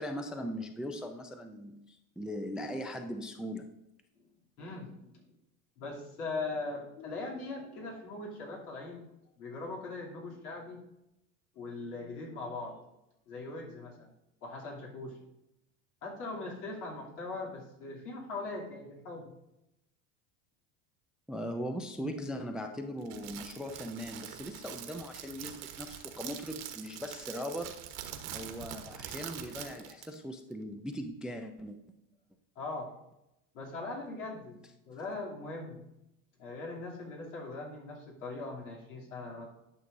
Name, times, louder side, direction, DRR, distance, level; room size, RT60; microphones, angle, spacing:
voice 1, 0.0-3.7 21.3-27.8 28.3-31.8, equal, ahead, 6 dB, 0.3 m, -39 dB
voice 2, 4.6-5.2 5.8-9.1 9.4-10.8 11.5-12.8 13.3-14.1 14.4-15.2 16.0-19.3 22.0-22.1 32.5-32.9 33.5-34.6 34.9-35.8 36.4-39.5, left 3 dB, 85° left, -3 dB, 2.9 m, -40 dB
Crackle, 23.0-30.1, right 10 dB, 55° right, 1.2 m, -44 dB
11.5 x 6.0 x 2.6 m, 0.89 s
supercardioid pair, 110°, 44 cm